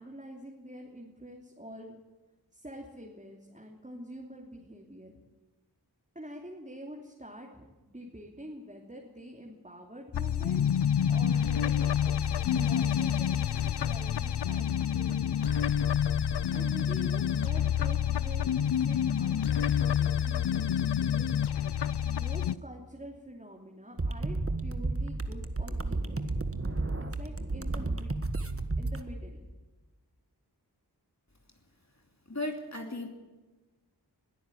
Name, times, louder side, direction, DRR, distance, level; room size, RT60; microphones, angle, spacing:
voice 1, 0.0-2.0 2.5-5.2 6.1-15.7 16.5-21.3 22.0-26.2 27.1-28.1 28.8-29.4, equal, 20° right, 0 dB, 3.0 m, -46 dB
sound 1, 10.1-22.6, left 9 dB, 75° left, 0.6 m, -28 dB
sound 2, 24.0-29.0, right 2 dB, 35° right, 1.5 m, -32 dB
voice 2, 32.3-33.1, left 1 dB, 40° left, 3 dB, 2.8 m, -35 dB
21.5 x 13.0 x 9.9 m, 1.2 s
wide cardioid pair, 45°, 41 cm